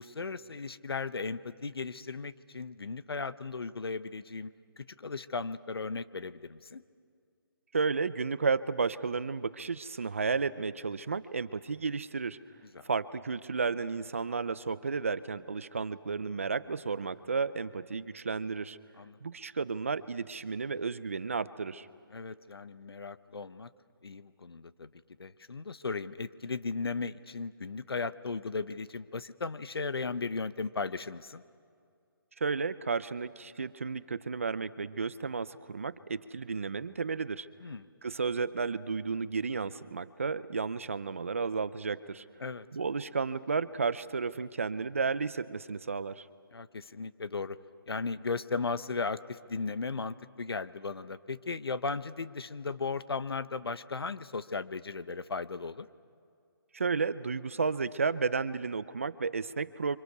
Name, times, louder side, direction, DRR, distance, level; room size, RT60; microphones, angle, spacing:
voice 1, 0.0-4.5 4.8-6.8 12.7-12.8 19.0-19.2 22.1-23.7 24.0-24.9 25.2-31.4 37.6-37.9 42.4-42.7 46.5-47.6 47.9-55.9, left 4 dB, 85° left, 14 dB, 1.1 m, -36 dB
voice 2, 7.7-12.4 12.8-18.8 19.2-21.9 32.4-37.5 38.0-42.2 42.7-46.3 56.7-60.0, right 4 dB, 35° right, 15 dB, 0.6 m, -32 dB
29.5 x 25.5 x 6.8 m, 2.3 s
hypercardioid pair, 175°, 12 cm